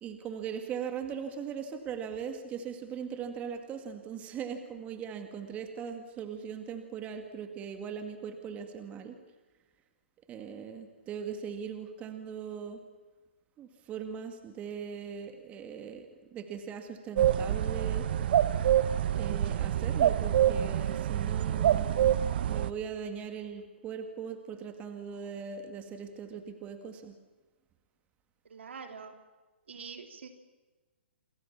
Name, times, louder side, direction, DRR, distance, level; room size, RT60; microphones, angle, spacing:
voice 1, 0.0-9.2 10.3-12.8 13.6-18.0 19.2-27.2, right 7 dB, 20° right, 7 dB, 2.2 m, -40 dB
sound 1, 17.2-22.7, right 10 dB, 55° right, 1.1 m, -26 dB
voice 2, 28.5-29.1 29.7-30.3, right 5 dB, 75° right, 6 dB, 3.6 m, -44 dB
28.0 x 23.5 x 7.4 m, 1.2 s
hypercardioid pair, 140°, 6 cm